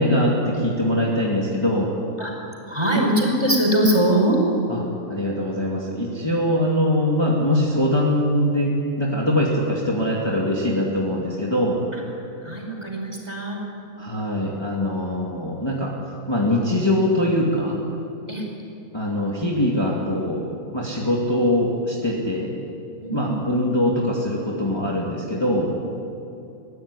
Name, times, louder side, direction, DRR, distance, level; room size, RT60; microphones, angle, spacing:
voice 1, 0.0-1.9 4.7-4.8 5.1-11.8 14.0-15.9 16.3-17.8 18.9-20.4 20.7-22.5 23.1-25.7, left 1 dB, 15° left, -4 dB, 2.4 m, -22 dB
voice 2, 2.7-4.4 11.9-12.0 12.4-13.6 18.3-18.4 23.0-23.3, right 1 dB, 20° right, -1 dB, 5.1 m, -21 dB
22.5 x 15.5 x 9.9 m, 2.8 s
omnidirectional pair, 1.6 m